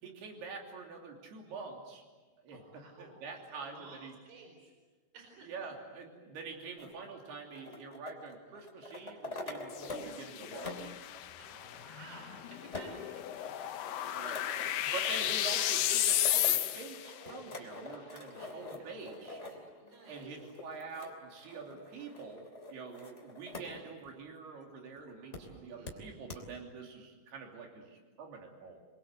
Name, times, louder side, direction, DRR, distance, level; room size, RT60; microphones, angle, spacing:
voice 1, 0.0-2.0 2.4-4.2 5.5-10.9 13.0-13.1 14.1-14.3 14.7-19.4 20.1-28.8, right 4 dB, 85° right, 1 dB, 5.1 m, -46 dB
voice 2, 2.5-4.7 5.1-5.5 11.4-13.8 14.0-14.8 18.0-19.1 19.5-20.4 21.6-21.8 25.0-26.0, right 3 dB, 65° right, 2 dB, 6.2 m, -56 dB
sound 1, 6.8-10.1 10.4-23.7 24.1-24.2 25.3-25.4 25.9-26.0 26.3-26.4, left 2 dB, 20° left, 3.1 m, -46 dB
sound 2, 9.7-17.1, left 12 dB, 90° left, 3.1 m, -33 dB
29.0 x 23.0 x 8.0 m, 1.3 s
omnidirectional pair, 4.5 m